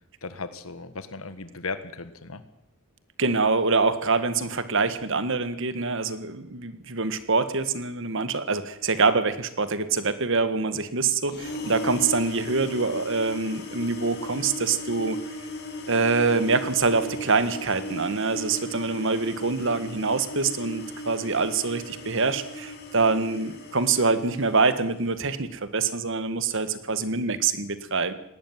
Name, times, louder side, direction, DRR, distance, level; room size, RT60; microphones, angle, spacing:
voice 1, 0.2-2.4, left 4 dB, 80° left, 11 dB, 1.6 m, -36 dB
voice 2, 3.2-15.2 15.9-28.1, right 4 dB, 65° right, 12 dB, 1.7 m, -25 dB
sound 1, 11.2-25.2, equal, 55° left, 4.9 m, -37 dB
19.0 x 17.5 x 9.3 m, 0.84 s
head